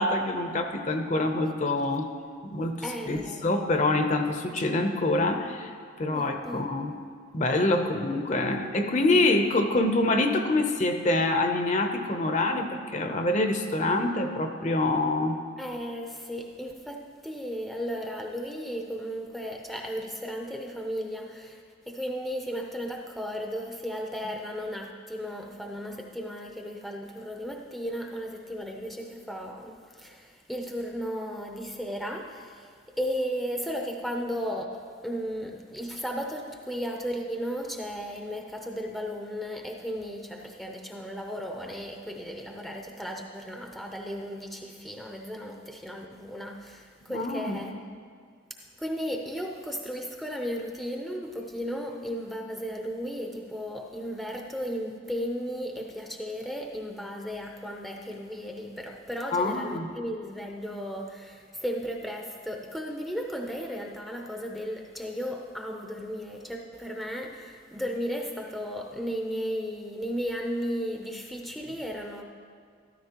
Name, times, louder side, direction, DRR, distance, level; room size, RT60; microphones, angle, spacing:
voice 1, 0.0-2.1 2.4-5.7 6.0-6.9 7.3-15.4 47.1-47.6 59.3-59.9, left 2 dB, 35° left, 5 dB, 0.7 m, -26 dB
voice 2, 2.8-3.4 6.1-6.6 15.6-32.7 33.0-47.7 48.8-72.2, equal, ahead, 1 dB, 0.6 m, -35 dB
13.5 x 13.0 x 3.0 m, 2.1 s
head